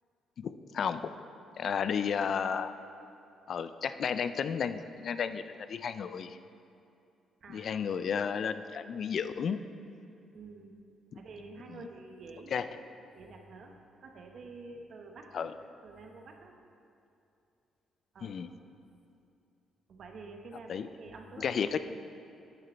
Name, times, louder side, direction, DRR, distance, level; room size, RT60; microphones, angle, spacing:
voice 1, 0.4-1.1 1.6-2.7 3.5-6.4 7.5-9.6 11.7-11.9 12.5-12.7 15.3-15.5 18.2-18.5 20.7-20.9 21.4-21.8, left 7 dB, 60° left, 11 dB, 0.4 m, -33 dB
voice 2, 7.4-7.8 10.3-10.8 11.1-12.5 13.1-13.7 14.0-15.5 15.8-16.5 18.1-18.4 19.9-21.6, right 3 dB, 55° right, 3 dB, 1.0 m, -48 dB
10.0 x 6.7 x 4.4 m, 2.6 s
cardioid pair, 90°, 0 cm